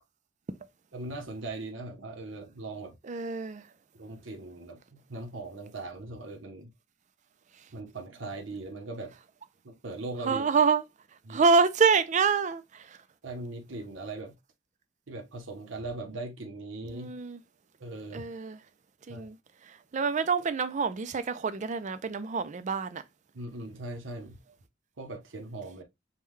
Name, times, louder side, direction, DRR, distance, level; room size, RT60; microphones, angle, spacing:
voice 1, 0.9-3.0 4.0-6.7 7.7-9.1 9.6-10.4 11.2-11.4 13.2-14.4 15.1-17.1 17.8-18.3 19.1-19.3 23.3-24.4 25.0-25.8, right 2 dB, 70° right, 0.9 m, -39 dB
voice 2, 3.0-3.6 10.2-10.8 11.3-13.0 16.9-17.4 18.1-18.6 19.1-19.4 19.6-23.0, right 5 dB, 40° right, 0.4 m, -27 dB
5.4 x 2.3 x 3.1 m
head